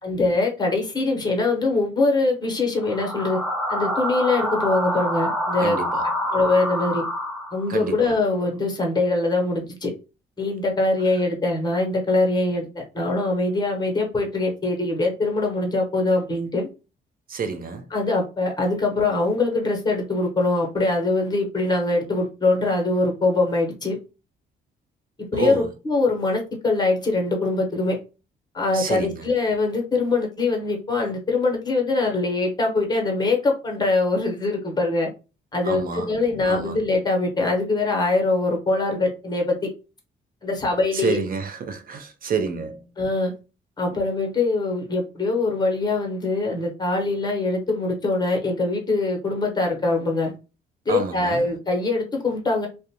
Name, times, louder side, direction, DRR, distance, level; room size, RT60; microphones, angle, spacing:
voice 1, 0.0-3.4 3.7-5.8 6.3-7.0 7.5-9.9 10.4-16.7 17.9-24.0 25.3-28.0 28.5-35.1 35.5-39.7 40.4-41.2 43.0-43.3 43.8-50.3 50.8-52.7, left 3 dB, 20° left, 1.0 m, -23 dB
sound 1, 2.8-7.9, equal, ahead, 0.6 m, -26 dB
voice 2, 5.6-6.0 7.7-8.1 17.3-17.8 25.3-25.7 28.7-29.2 35.6-36.1 36.5-36.8 40.9-42.8 50.9-51.4, right 5 dB, 45° right, 0.6 m, -28 dB
2.4 x 2.1 x 2.8 m
cardioid pair, 90°, 20 cm